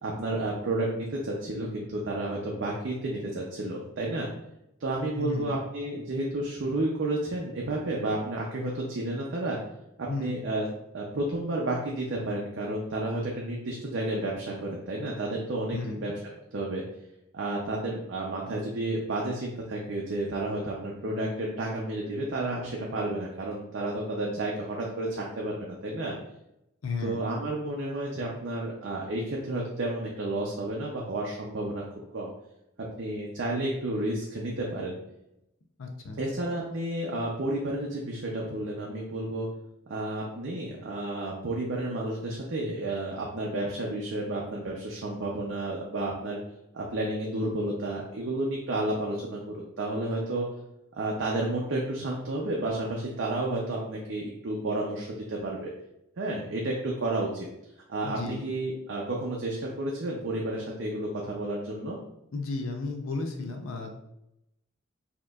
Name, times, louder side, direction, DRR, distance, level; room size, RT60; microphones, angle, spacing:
voice 1, 0.0-4.3 4.8-9.6 10.0-10.7 10.9-16.1 16.5-16.8 17.3-26.1 27.0-32.3 33.0-35.0 36.2-39.5 39.9-46.4 46.7-50.5 50.9-55.7 56.2-57.5 57.9-62.0, right 2 dB, 65° right, -2 dB, 0.6 m, -31 dB
voice 2, 5.2-5.5 10.1-10.4 15.7-16.0 26.8-27.2 35.8-36.2 58.0-58.4 62.3-63.9, left 3 dB, 80° left, 4 dB, 0.5 m, -33 dB
4.3 x 2.9 x 2.4 m, 0.85 s
head